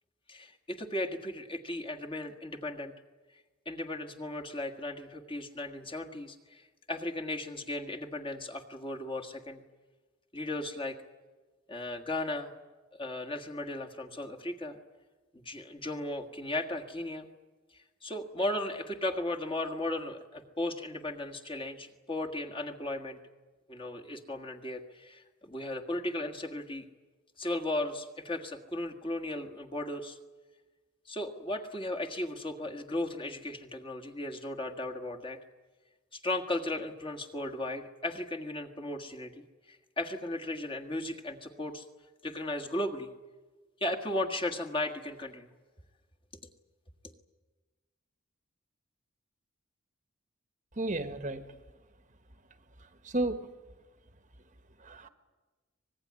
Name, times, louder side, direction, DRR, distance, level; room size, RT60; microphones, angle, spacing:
voice 1, 0.3-2.9 3.6-9.6 10.3-11.0 11.7-12.5 12.9-14.8 15.3-17.3 17.7-23.2 23.7-26.8 27.4-30.2 31.0-35.4 36.1-41.9 42.2-43.1 43.8-45.5 47.0-47.1, left 1 dB, 25° left, 2 dB, 1.7 m, -36 dB
voice 2, 50.8-51.5 53.0-53.5 54.8-55.1, right 2 dB, 35° right, 9 dB, 1.2 m, -32 dB
25.0 x 20.0 x 9.6 m, 1.3 s
head